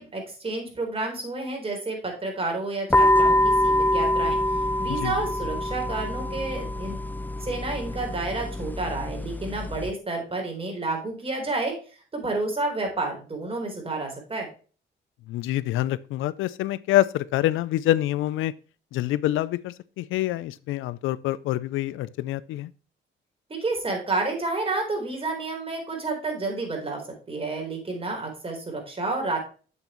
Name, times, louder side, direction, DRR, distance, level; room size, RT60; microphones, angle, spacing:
voice 1, 0.0-4.4 4.8-7.0 7.4-11.7 12.1-14.5 23.5-27.0 27.3-29.4, right 3 dB, 30° right, 3.9 m, -30 dB
sound 1, 2.9-9.9, left 1 dB, 10° left, 0.5 m, -25 dB
voice 2, 15.3-18.5 18.9-22.7, left 14 dB, 85° left, 0.5 m, -26 dB
8.3 x 6.8 x 3.0 m
cardioid pair, 90°, 20 cm